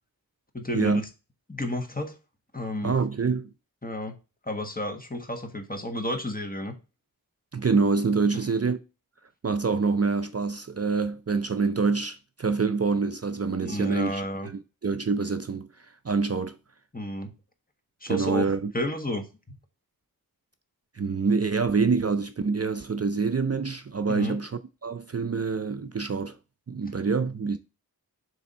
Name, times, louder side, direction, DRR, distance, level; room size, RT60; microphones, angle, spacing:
voice 1, 0.5-1.1 1.5-2.1 2.5-3.0 3.8-4.1 4.4-6.8 8.3-8.4 13.6-14.5 16.9-17.3 18.0-19.6 24.1-24.4, left 1 dB, 25° left, 1.3 m, -32 dB
voice 2, 2.8-3.5 7.5-8.8 9.4-16.6 18.1-18.7 21.0-26.4 26.7-27.6, right 4 dB, 40° right, 0.5 m, -26 dB
7.0 x 3.3 x 5.4 m
wide cardioid pair, 50°, 37 cm